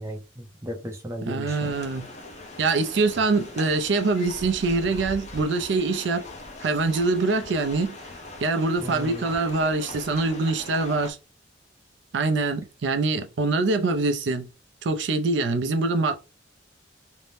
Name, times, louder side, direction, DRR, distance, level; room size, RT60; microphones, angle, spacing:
voice 1, 0.0-1.8 8.8-9.3, equal, 15° right, 0.5 m, -35 dB
voice 2, 1.3-2.1 2.6-6.3 6.6-7.9 8.4-11.2 12.1-14.5 14.8-16.2, right 3 dB, 70° right, 0.4 m, -24 dB
sound 1, 1.5-11.1, left 2 dB, 35° left, 0.6 m, -41 dB
2.6 x 2.0 x 3.2 m
head